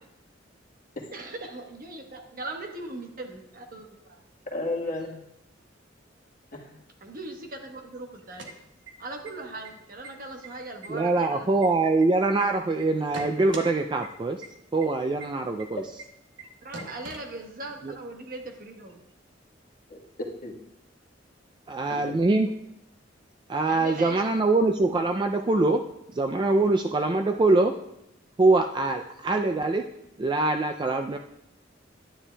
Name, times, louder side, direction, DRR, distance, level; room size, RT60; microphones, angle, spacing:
voice 1, 1.1-4.2 7.0-8.5 9.0-11.7 16.6-19.0 22.3-22.4 23.7-24.2, right 2 dB, 50° right, 3 dB, 1.2 m, -39 dB
voice 2, 4.5-5.2 6.5-6.8 16.8-16.9 19.9-20.5 21.9-22.1, left 2 dB, 45° left, -1 dB, 1.4 m, -34 dB
sound 1, 8.2-9.3 9.6-9.7 10.0-10.5 10.8-12.4 12.8-13.7 14.0-14.1 14.4-14.5 14.8-14.9 15.2-15.3 15.6-15.7 16.0-16.1 16.4-16.5 16.7-17.8, right 3 dB, 70° right, 1.3 m, -41 dB
voice 3, 10.9-14.4 14.7-15.8 17.8-17.9 21.7-22.5 23.5-25.8 26.1-27.7 28.4-29.8 30.2-31.2, right 2 dB, 25° right, 5 dB, 0.3 m, -23 dB
11.0 x 9.7 x 2.3 m, 0.84 s
head